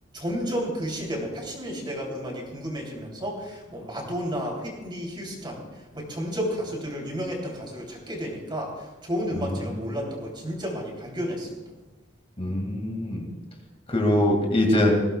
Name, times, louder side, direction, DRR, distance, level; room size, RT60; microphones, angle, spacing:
voice 1, 0.1-11.6, equal, 25° right, 0 dB, 3.1 m, -32 dB
voice 2, 12.4-13.3 13.9-14.9, left 1 dB, 30° left, 1 dB, 2.1 m, -23 dB
20.0 x 16.0 x 2.3 m, 1.1 s
head